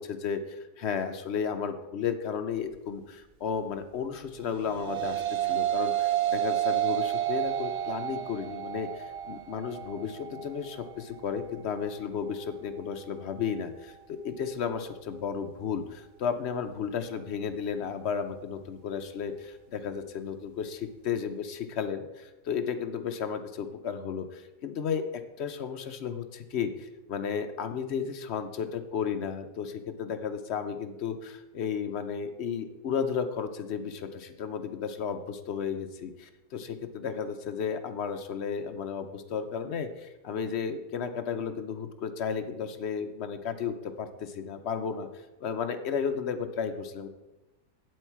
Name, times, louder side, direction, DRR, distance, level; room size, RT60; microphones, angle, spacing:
voice 1, 0.0-25.0 25.4-45.1 45.4-47.1, left 7 dB, 55° left, 8 dB, 0.7 m, -33 dB
sound 1, 4.4-13.6, right 12 dB, 60° right, 0.7 m, -31 dB
8.6 x 7.7 x 4.6 m, 1.0 s
omnidirectional pair, 1.7 m